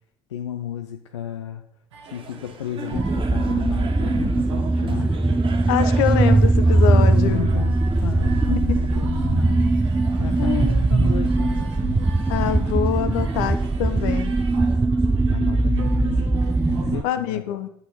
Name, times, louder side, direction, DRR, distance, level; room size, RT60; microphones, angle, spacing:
voice 1, 0.3-1.6 2.1-5.1 6.7-7.8 8.0-9.7 10.2-12.0 15.3-17.6, left 10 dB, 90° left, 5 dB, 0.5 m, -33 dB
sound 1, 1.9-17.0, right 5 dB, 85° right, 1.0 m, -43 dB
sound 2, 2.0-14.8, right 5 dB, 35° right, 1.5 m, -43 dB
sound 3, 2.9-17.0, right 2 dB, 10° right, 0.5 m, -20 dB
voice 2, 5.7-7.5 8.5-8.8 10.4-11.0 12.3-14.4 17.0-17.7, left 10 dB, 70° left, 10 dB, 0.9 m, -25 dB
9.6 x 8.1 x 4.1 m, 0.66 s
hypercardioid pair, 70°, 14 cm